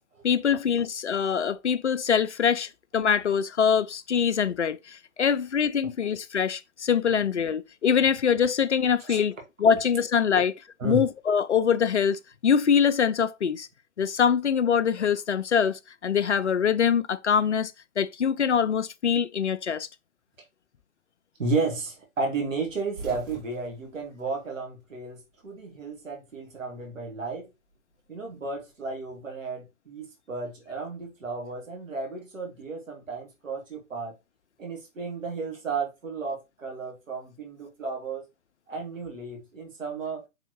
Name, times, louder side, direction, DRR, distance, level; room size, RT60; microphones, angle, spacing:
voice 1, 0.2-9.3 9.6-10.5 10.8-13.7 14.0-19.9, left 7 dB, 55° left, 0.5 m, -24 dB
voice 2, 21.4-27.5 28.1-34.2 34.6-38.2 38.7-40.2, right 3 dB, 60° right, 1.8 m, -33 dB
sound 1, 22.6-25.2 25.5-26.5 27.7-29.2, right 2 dB, 35° right, 2.2 m, -46 dB
4.9 x 3.6 x 3.0 m
figure-of-eight pair, 135°, 43 cm